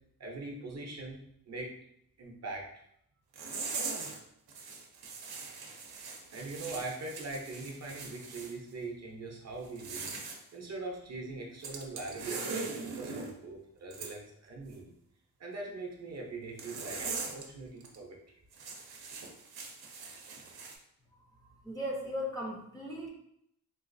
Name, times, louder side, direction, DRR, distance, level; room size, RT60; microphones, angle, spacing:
voice 1, 0.2-1.2 1.5-1.7 2.2-2.8 6.3-14.9 15.4-18.4, right 3 dB, 45° right, 0 dB, 0.6 m, -42 dB
sound 1, 3.3-4.2 4.5-8.5 9.6-10.4 11.6-13.3 13.9-14.1 16.6-17.5 17.8-18.0 18.5-20.7, right 4 dB, 85° right, 0.6 m, -40 dB
voice 2, 21.5-23.1, equal, 10° left, -3 dB, 0.5 m, -37 dB
3.9 x 2.3 x 2.5 m, 0.73 s
wide cardioid pair, 145°, 37 cm